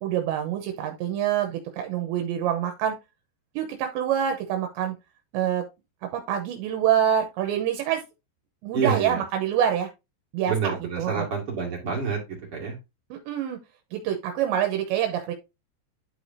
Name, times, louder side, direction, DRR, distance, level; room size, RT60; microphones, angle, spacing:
voice 1, 0.0-3.0 3.6-5.0 5.3-5.6 6.1-8.0 8.6-9.9 10.3-11.3 13.1-13.6 13.9-15.3, right 10 dB, 80° right, 5 dB, 2.9 m, -26 dB
voice 2, 8.7-9.2 10.5-12.8, right 6 dB, 45° right, -2 dB, 2.0 m, -28 dB
11.5 x 4.8 x 2.7 m, 0.24 s
omnidirectional pair, 5.5 m